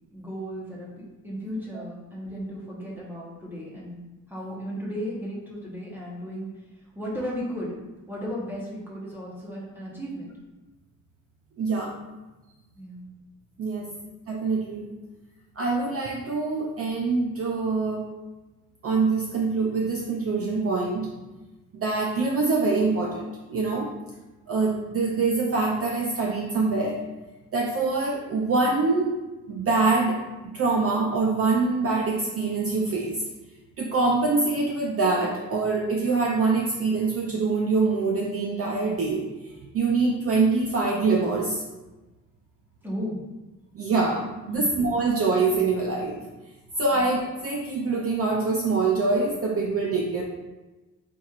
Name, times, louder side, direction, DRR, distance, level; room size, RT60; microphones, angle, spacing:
voice 1, 0.1-4.0 4.3-7.8 8.1-10.3 12.7-13.0 13.9-14.0 42.8-43.2 44.5-44.6 46.9-47.0, equal, 5° right, -5 dB, 0.9 m, -35 dB
voice 2, 11.6-11.9 13.6-13.9 14.3-14.9 15.6-18.0 18.8-21.1 21.7-23.9 24.5-27.0 27.5-29.2 29.5-30.2 30.4-33.2 33.8-39.3 39.7-41.6 43.7-46.2 46.8-50.2, right 3 dB, 45° right, -1 dB, 0.5 m, -24 dB
4.5 x 4.1 x 2.4 m, 1.1 s
wide cardioid pair, 175°, 33 cm